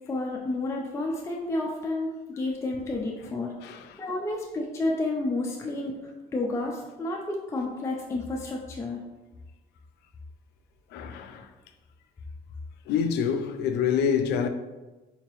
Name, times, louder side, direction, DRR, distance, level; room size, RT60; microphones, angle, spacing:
voice 1, 0.1-3.5 4.0-5.9 6.3-9.0, left 2 dB, 15° left, 0.4 m, -30 dB
voice 2, 3.6-4.0 10.9-11.5 12.9-14.5, left 7 dB, 80° left, 0.4 m, -27 dB
3.9 x 2.8 x 3.0 m
cardioid pair, 110°, 17 cm